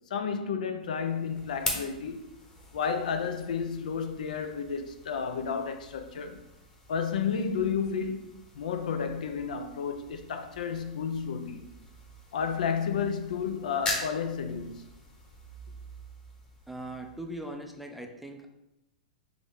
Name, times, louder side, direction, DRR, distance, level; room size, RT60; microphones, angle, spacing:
voice 1, 0.1-2.2 2.7-6.4 6.9-11.6 12.3-14.9, left 6 dB, 70° left, 0.4 m, -32 dB
sound 1, 0.8-17.7, left 2 dB, 20° left, 1.0 m, -43 dB
voice 2, 16.7-18.5, right 1 dB, 5° right, 0.5 m, -40 dB
3.9 x 2.9 x 3.4 m
hypercardioid pair, 105°, 4 cm